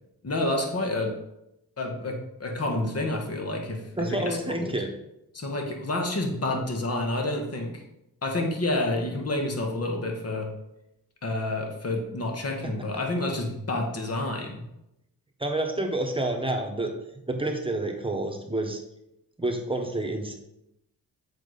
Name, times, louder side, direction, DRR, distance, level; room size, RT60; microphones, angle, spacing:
voice 1, 0.2-1.1 1.8-3.8 4.1-4.7 5.3-7.7 8.2-10.5 11.2-14.6, left 2 dB, 40° left, 1 dB, 1.5 m, -29 dB
voice 2, 4.0-4.9 15.4-16.9 17.3-18.8 19.4-20.3, right 2 dB, 15° right, 2 dB, 1.3 m, -28 dB
7.2 x 4.9 x 4.1 m, 0.84 s
cardioid pair, 70°, 38 cm